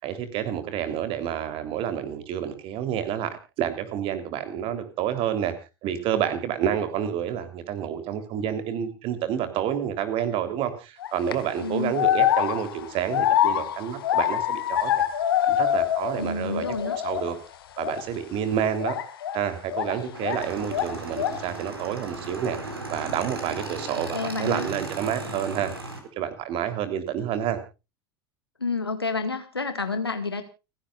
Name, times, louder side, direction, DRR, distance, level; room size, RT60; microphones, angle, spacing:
voice 1, 0.0-5.5 5.8-14.9 15.5-16.7 17.0-17.4 17.8-19.0 19.3-22.6 22.9-25.7 26.2-27.6, right 9 dB, 45° right, 10 dB, 3.5 m, -29 dB
sound 1, 11.0-11.3 11.9-16.3 16.6-17.3 17.8-18.0 18.8-20.5 20.7-21.5, left 11 dB, 70° left, 2.0 m, -25 dB
voice 2, 11.6-12.0 16.2-17.0 23.9-24.7 28.6-30.4, left 4 dB, 90° left, 8 dB, 2.1 m, -29 dB
Motorcycle / Engine, 20.1-26.0, right 2 dB, 85° right, 4.2 m, -36 dB
29.5 x 11.0 x 2.5 m, 0.30 s
figure-of-eight pair, 80°, 13 cm